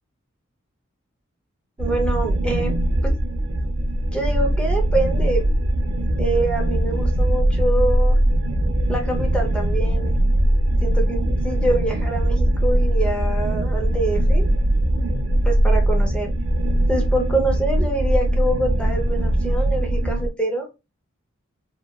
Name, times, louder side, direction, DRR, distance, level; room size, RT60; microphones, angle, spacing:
voice 1, 1.8-2.7 3.0-3.1 4.1-5.5 6.2-8.2 8.9-10.2 10.8-14.5 15.4-16.3 16.9-20.7, right 1 dB, 5° left, 2 dB, 0.6 m, -25 dB
sound 1, 1.8-20.3, right 1 dB, 85° right, 0.6 m, -20 dB
3.1 x 2.1 x 2.2 m, 0.26 s
head